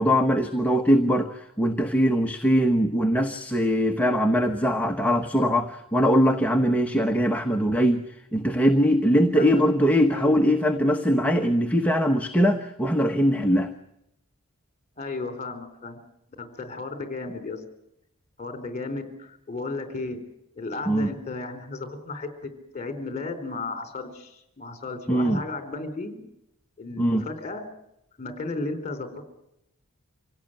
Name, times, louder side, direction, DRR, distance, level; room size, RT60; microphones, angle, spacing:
voice 1, 0.0-8.0 8.3-13.7 20.9-21.1 25.1-25.4 27.0-27.2, equal, 5° left, 5 dB, 1.1 m, -21 dB
voice 2, 9.3-9.7 10.1-10.4 15.0-16.0 16.4-17.6 18.4-20.2 20.6-26.3 26.8-27.6 28.2-29.2, left 3 dB, 30° left, 8 dB, 4.0 m, -34 dB
26.0 x 17.0 x 9.1 m, 0.82 s
head